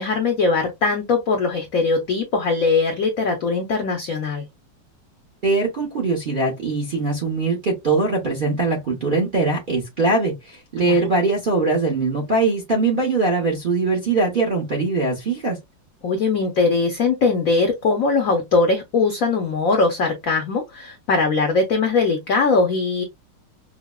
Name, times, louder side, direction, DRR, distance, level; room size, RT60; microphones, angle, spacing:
voice 1, 0.0-4.5 10.8-11.0 16.0-23.0, left 4 dB, 70° left, 0.8 m, -20 dB
voice 2, 5.4-15.6, right 3 dB, 60° right, 0.5 m, -21 dB
5.5 x 2.0 x 2.2 m
omnidirectional pair, 2.3 m